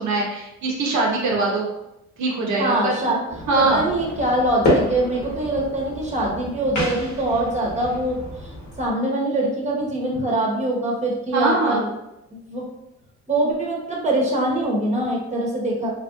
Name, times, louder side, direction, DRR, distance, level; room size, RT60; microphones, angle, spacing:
voice 1, 0.0-1.6 2.2-3.9 11.3-11.8, right 2 dB, 70° right, -2 dB, 0.7 m, -22 dB
voice 2, 2.6-3.2 3.6-11.9 12.3-12.7 13.3-15.9, right 1 dB, 25° right, -2 dB, 0.9 m, -23 dB
sound 1, 3.3-8.9, left 1 dB, 75° left, 1.4 m, -28 dB
3.4 x 2.6 x 2.4 m, 0.87 s
cardioid pair, 90°, 30 cm